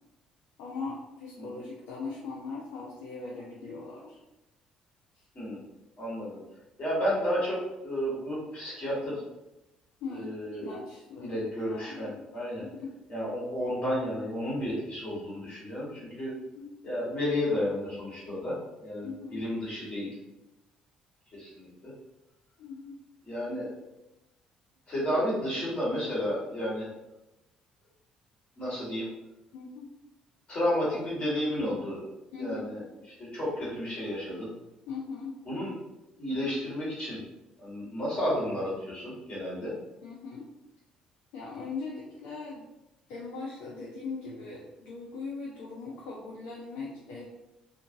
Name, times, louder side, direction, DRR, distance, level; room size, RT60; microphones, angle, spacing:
voice 1, 0.6-4.2 5.1-5.2 10.0-10.3 10.6-12.2 12.6-12.9 16.5-16.7 19.0-19.4 22.6-23.0 29.5-29.9 32.3-32.7 34.9-35.4 40.0-40.5 41.3-42.7 43.1-47.2, left 4 dB, 60° left, -4 dB, 0.4 m, -40 dB
voice 2, 6.0-6.4 6.8-9.2 10.1-10.7 11.2-12.6 13.1-16.3 16.8-20.1 21.3-21.9 23.2-23.7 24.9-26.9 28.6-29.1 30.5-32.1 32.4-32.8 33.2-34.5 35.5-35.7 36.2-37.2 37.6-39.7, equal, 40° left, -7 dB, 1.4 m, -32 dB
2.5 x 2.4 x 2.6 m, 0.96 s
figure-of-eight pair, 50°, 3 cm